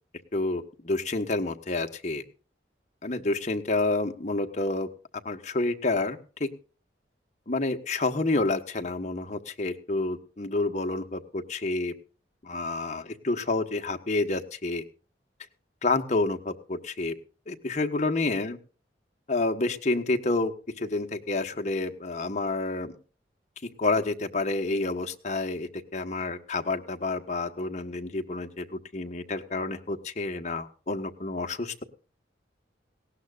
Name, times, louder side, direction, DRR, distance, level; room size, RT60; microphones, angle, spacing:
voice 1, 0.3-2.2 3.0-4.9 5.2-6.5 7.5-11.9 12.4-14.8 15.8-17.1 17.5-18.6 19.3-22.9 23.8-31.8, left 2 dB, 40° left, 5 dB, 1.3 m, -29 dB
19.0 x 17.5 x 2.5 m, 0.38 s
head